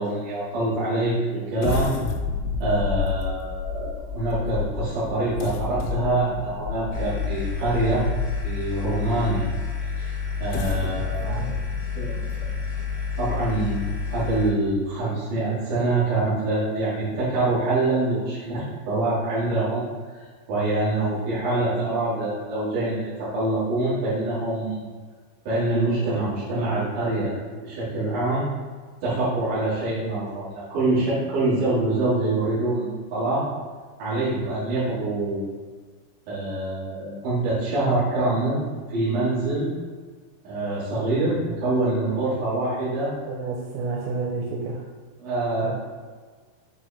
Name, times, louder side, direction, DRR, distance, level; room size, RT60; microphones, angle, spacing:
voice 1, 0.0-1.9 2.6-8.0 8.4-9.5 10.0-11.5 11.9-12.1 13.2-13.9 14.1-19.8 20.5-24.9 25.4-27.3 27.6-28.4 29.0-33.5 34.0-35.5 36.3-38.6 38.9-39.7 40.4-43.1 45.2-45.7, right 2 dB, 50° right, -12 dB, 2.8 m, -25 dB
sound 1, 1.6-8.7 9.3-9.4 10.3-13.8 14.3-14.4 14.8-15.0, left 5 dB, 85° left, 3.2 m, -31 dB
sound 2, 6.9-14.5, left 5 dB, 70° left, 1.4 m, -29 dB
voice 2, 11.2-11.5 43.3-44.8 45.6-45.7, right 4 dB, 90° right, -2 dB, 3.4 m, -30 dB
8.6 x 3.9 x 3.4 m, 1.5 s
omnidirectional pair, 5.9 m